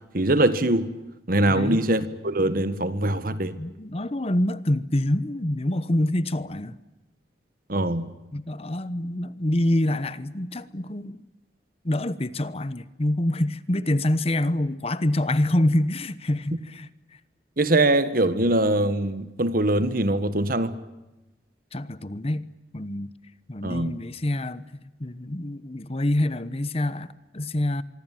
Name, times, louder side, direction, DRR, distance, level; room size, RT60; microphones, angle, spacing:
voice 1, 0.1-1.0 1.3-3.5 7.7-8.1 17.6-20.8 23.6-24.0, right 1 dB, 50° right, 1.6 m, -22 dB
voice 2, 1.5-1.8 3.6-6.8 8.3-11.2 11.8-16.9 21.7-22.5 22.7-23.1 23.5-24.7 25.0-27.8, left 1 dB, 35° left, 1.0 m, -26 dB
25.0 x 24.0 x 9.2 m
head